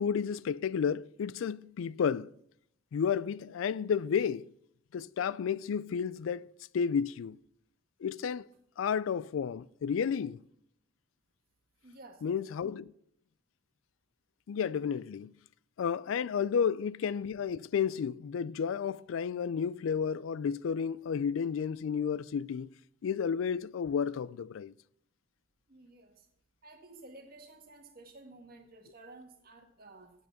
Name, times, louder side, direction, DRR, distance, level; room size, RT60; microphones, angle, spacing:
voice 1, 0.0-2.3 2.9-4.5 4.9-6.5 6.7-7.4 8.0-8.5 8.8-10.4 12.2-12.9 14.5-15.3 15.8-22.7 23.0-24.7, left 7 dB, 80° left, 0.3 m, -32 dB
voice 2, 11.8-12.4 25.7-26.3 26.6-30.1, right 2 dB, 50° right, 1.7 m, -53 dB
9.3 x 7.9 x 5.8 m
head